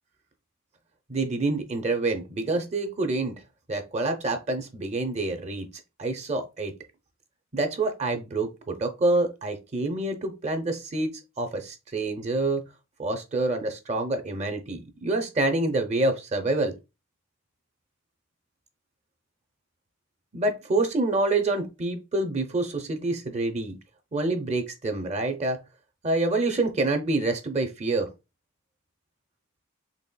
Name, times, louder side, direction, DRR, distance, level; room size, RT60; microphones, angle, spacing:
voice 1, 1.1-3.3 3.7-5.7 6.0-6.7 7.5-11.1 11.4-12.6 13.0-16.7 20.3-23.8 24.1-25.6 26.0-28.1, right 2 dB, 35° right, 0.6 m, -27 dB
4.1 x 3.3 x 2.2 m
head